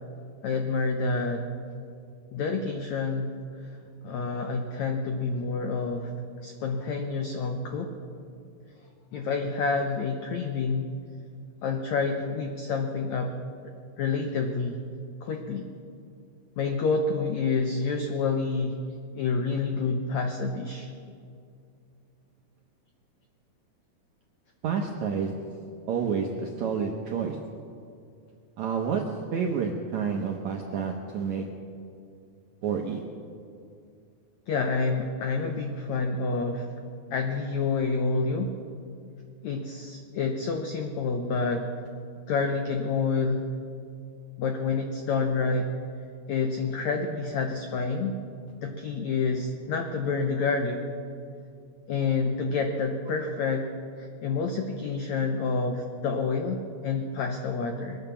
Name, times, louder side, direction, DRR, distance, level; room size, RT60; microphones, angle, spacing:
voice 1, 0.4-1.5 2.3-3.3 4.0-6.1 6.4-7.9 9.1-10.9 11.6-13.3 14.0-14.8 15.2-15.6 16.6-18.8 19.1-20.9 34.5-36.7 37.1-38.5 39.4-41.7 42.3-43.4 44.4-45.7 46.3-48.2 48.6-50.8 51.9-58.0, left 4 dB, 80° left, 4 dB, 1.6 m, -28 dB
voice 2, 24.6-25.3 25.9-27.4 28.6-29.0 29.3-31.4 32.6-33.0, right 6 dB, 80° right, 2 dB, 1.7 m, -29 dB
22.0 x 8.9 x 7.0 m, 2.4 s
omnidirectional pair, 4.5 m